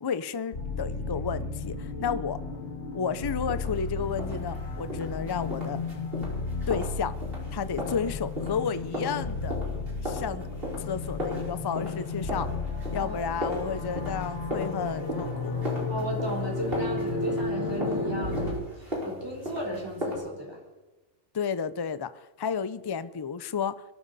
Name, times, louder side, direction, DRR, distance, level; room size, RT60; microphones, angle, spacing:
voice 1, 0.0-2.4 2.9-5.8 6.7-7.2 7.5-9.6 10.0-10.5 10.8-12.5 12.9-15.5 21.3-23.8, left 6 dB, 30° left, 14 dB, 0.4 m, -32 dB
sound 1, 0.5-18.5, left 3 dB, 70° left, 2.7 m, -33 dB
sound 2, 3.5-20.2, left 1 dB, 50° right, 5.2 m, -38 dB
voice 2, 15.9-20.6, right 1 dB, 20° right, -2 dB, 3.8 m, -35 dB
23.0 x 13.0 x 4.1 m, 1.1 s
omnidirectional pair, 1.2 m